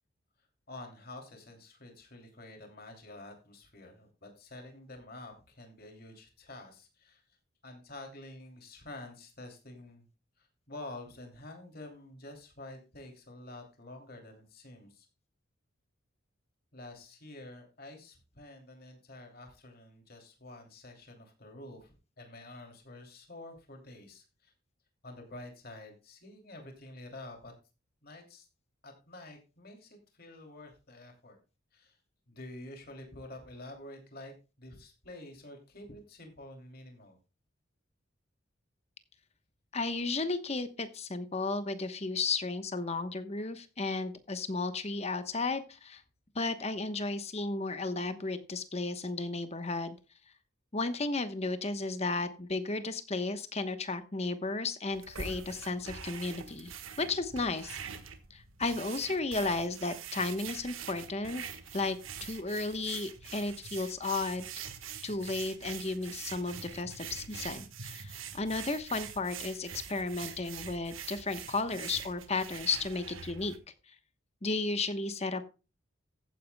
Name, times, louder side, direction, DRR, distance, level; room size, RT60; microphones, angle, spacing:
voice 1, 0.7-7.2 7.6-10.1 10.4-15.1 16.7-24.5 25.0-27.5 28.0-28.5 28.8-31.4 31.7-32.0 32.3-37.2, left 2 dB, 50° left, 3 dB, 2.8 m, -48 dB
voice 2, 39.7-46.0 46.3-50.0 50.7-56.7 57.0-57.8 58.3-61.4 61.7-64.5 65.0-73.5 73.9-74.0 74.4-75.5, left 3 dB, 30° left, 10 dB, 1.0 m, -34 dB
sound 1, 54.9-73.6, right 7 dB, 85° right, 1.5 m, -44 dB
15.0 x 9.3 x 2.2 m, 0.30 s
head